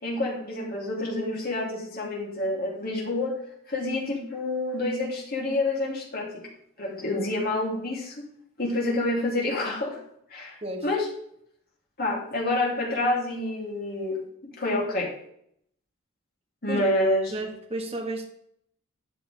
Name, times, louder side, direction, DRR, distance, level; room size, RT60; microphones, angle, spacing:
voice 1, 0.0-3.4 3.7-6.4 6.8-8.1 8.6-10.0 10.3-11.1 12.0-14.2 14.6-15.1 16.6-17.3, left 2 dB, 50° left, -3 dB, 3.4 m, -28 dB
voice 2, 17.3-18.3, right 1 dB, 30° right, 1 dB, 1.7 m, -32 dB
12.0 x 7.9 x 3.6 m, 0.69 s
head